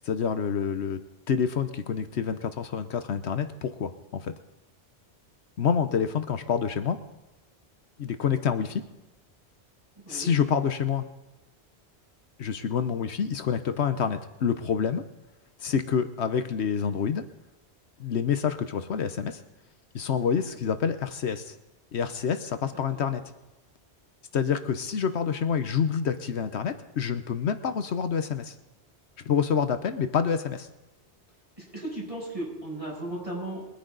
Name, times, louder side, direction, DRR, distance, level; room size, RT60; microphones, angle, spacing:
voice 1, 0.0-1.0 1.3-4.3 5.6-7.0 8.0-8.8 10.1-11.1 12.4-15.0 15.6-17.2 18.0-19.4 19.9-21.5 21.9-23.2 24.3-28.5 29.2-30.7, left 7 dB, 75° left, 9 dB, 1.1 m, -27 dB
voice 2, 31.7-33.6, right 1 dB, 30° right, -4 dB, 6.8 m, -35 dB
22.5 x 10.0 x 3.9 m, 1.0 s
omnidirectional pair, 1.1 m